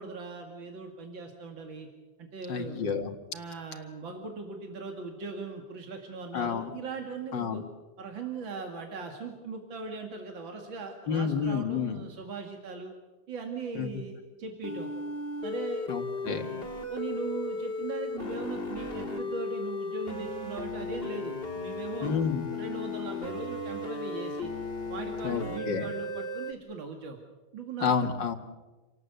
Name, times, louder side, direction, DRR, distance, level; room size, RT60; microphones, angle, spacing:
voice 1, 0.0-1.9 2.2-3.0 3.3-7.6 8.0-12.9 13.3-14.9 15.4-15.9 16.2-22.1 22.5-24.5 24.9-27.2 27.5-27.9, right 4 dB, 80° right, 3 dB, 3.0 m, -39 dB
voice 2, 2.5-3.1 6.3-6.7 7.3-7.6 11.1-12.0 13.8-13.9 15.9-16.4 22.0-22.5 25.2-25.9 27.8-28.4, left 6 dB, 65° left, 6 dB, 2.5 m, -29 dB
sound 1, 14.6-26.5, left 3 dB, 30° left, 2.0 m, -36 dB
29.5 x 18.5 x 8.2 m, 1.2 s
omnidirectional pair, 2.1 m